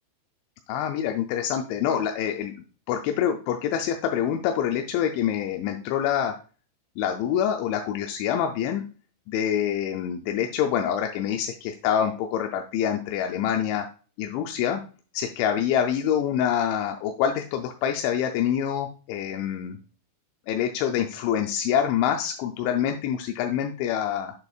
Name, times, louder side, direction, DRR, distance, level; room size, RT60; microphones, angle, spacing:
voice 1, 0.7-2.5 2.9-6.3 7.0-8.8 9.3-13.9 14.2-14.8 15.1-19.8 20.5-24.3, left 9 dB, 85° left, 4 dB, 2.9 m, -26 dB
7.9 x 7.0 x 2.3 m, 0.37 s
omnidirectional pair, 5.3 m